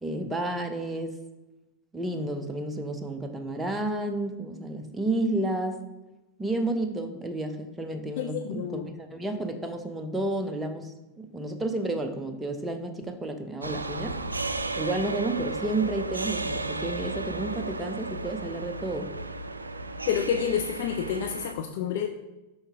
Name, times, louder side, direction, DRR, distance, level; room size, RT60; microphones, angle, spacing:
voice 1, 0.0-1.2 1.9-5.8 6.4-14.2 14.8-19.1, right 2 dB, 10° right, 5 dB, 0.7 m, -31 dB
voice 2, 8.2-8.9 20.1-22.1, left 8 dB, 50° left, 5 dB, 0.4 m, -29 dB
sound 1, 13.6-21.5, right 2 dB, 80° right, 0.3 m, -34 dB
5.6 x 5.5 x 3.5 m, 1.1 s
figure-of-eight pair, 90°, 0 cm